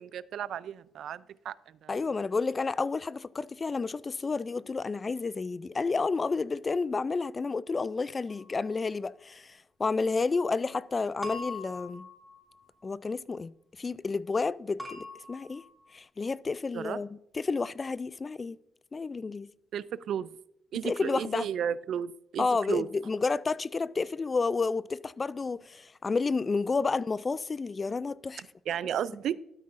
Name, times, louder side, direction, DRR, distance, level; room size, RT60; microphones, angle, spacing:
voice 1, 0.0-1.6 1.8-2.0 16.7-17.0 19.7-20.3 20.7-22.9 28.7-29.4, right 9 dB, 70° right, 0.3 m, -33 dB
voice 2, 1.9-12.1 12.8-13.5 13.8-15.6 15.9-17.1 17.3-18.6 18.9-19.5 20.8-21.5 22.4-28.4, left 4 dB, 30° left, 0.3 m, -30 dB
sound 1, 8.3-8.8 11.2-12.9 14.8-15.9, left 2 dB, ahead, 2.9 m, -42 dB
12.5 x 9.3 x 2.5 m
cardioid pair, 90°, 0 cm